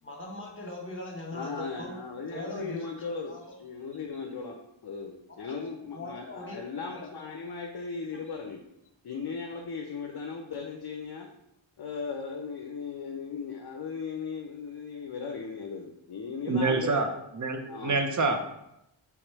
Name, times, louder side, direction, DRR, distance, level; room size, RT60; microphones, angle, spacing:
voice 1, 0.0-2.9 3.3-3.4 5.4-7.2, left 1 dB, 25° left, 0 dB, 1.1 m, -41 dB
voice 2, 1.3-4.6 4.8-8.6 9.0-11.3 11.8-17.0 17.7-18.0, left 5 dB, 50° left, 3 dB, 0.5 m, -37 dB
voice 3, 16.5-17.1 17.4-18.5, right 3 dB, 40° right, 6 dB, 0.6 m, -27 dB
3.5 x 3.0 x 4.6 m, 0.83 s
wide cardioid pair, 80°, 49 cm